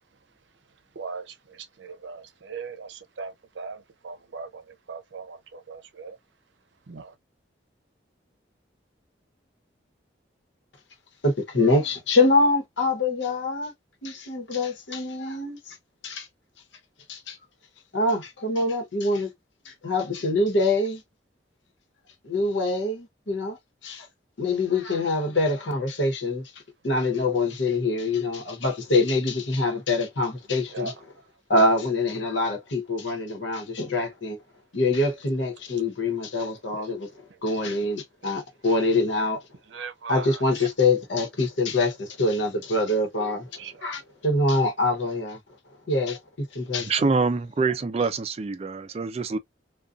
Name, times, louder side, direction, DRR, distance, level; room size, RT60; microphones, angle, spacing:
voice 1, 0.9-6.2 6.9-7.2 30.7-31.3 36.7-36.9 37.3-37.9 38.2-38.4 39.7-40.7 43.6-44.0, right 4 dB, 80° right, 0.6 m, -40 dB
voice 2, 11.2-13.7 14.0-15.8 16.0-16.3 17.1-17.4 17.9-19.3 19.6-21.0 22.2-23.6 23.8-24.1 24.4-26.5 26.8-30.9 31.5-34.4 34.7-37.1 37.4-39.4 40.1-45.4 45.9-46.2 46.5-46.9 48.0-48.1, left 2 dB, 85° left, 1.0 m, -25 dB
voice 3, 46.8-49.4, right 4 dB, 35° right, 0.3 m, -25 dB
2.5 x 2.3 x 2.4 m
head